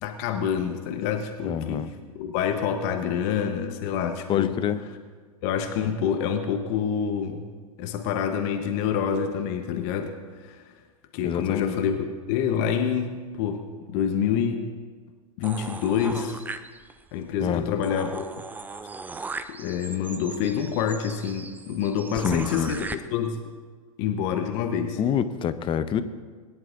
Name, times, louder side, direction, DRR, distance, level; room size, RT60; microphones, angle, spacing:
voice 1, 0.0-4.6 5.4-7.5 7.8-10.6 11.1-14.6 15.4-16.4 17.1-18.4 19.5-23.5 24.0-25.0, left 7 dB, 45° left, 6 dB, 1.0 m, -27 dB
voice 2, 1.4-1.9 4.3-4.8 11.2-11.8 17.4-17.6 22.2-22.7 25.0-26.0, left 8 dB, 25° left, 12 dB, 0.7 m, -26 dB
sound 1, 15.4-17.1 17.5-17.6 17.8-22.9, right 4 dB, 10° right, 0.5 m, -38 dB
21.0 x 10.5 x 2.6 m, 1.5 s
hypercardioid pair, 100°, 19 cm